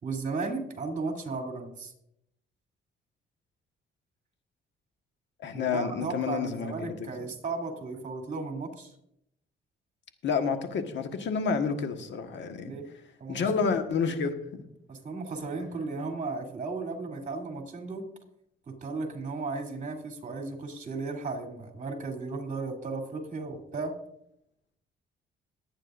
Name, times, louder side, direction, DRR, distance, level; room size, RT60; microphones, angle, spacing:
voice 1, 0.0-1.9 5.5-8.9 12.6-12.9 13.2-13.4 14.9-18.1 18.7-23.9, right 3 dB, 40° right, 2 dB, 3.1 m, -35 dB
voice 2, 5.4-7.1 10.2-12.7 13.3-14.6, left 5 dB, 65° left, 6 dB, 1.5 m, -29 dB
22.0 x 8.9 x 2.6 m, 0.76 s
cardioid pair, 90°, 20 cm